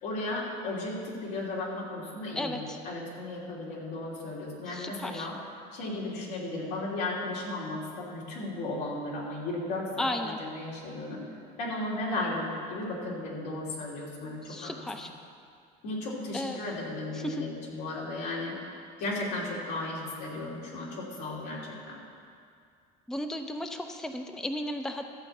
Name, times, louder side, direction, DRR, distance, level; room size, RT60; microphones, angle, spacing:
voice 1, 0.0-5.4 5.7-11.2 11.6-14.7 15.8-18.5 19.0-22.0, left 2 dB, 90° left, -5 dB, 3.2 m, -35 dB
voice 2, 2.3-2.8 4.7-5.3 10.0-10.4 14.5-15.1 16.3-16.6 17.1-17.5 23.1-25.0, left 1 dB, 5° left, 5 dB, 0.5 m, -34 dB
13.5 x 4.6 x 7.9 m, 2.3 s
cardioid pair, 120°, 19 cm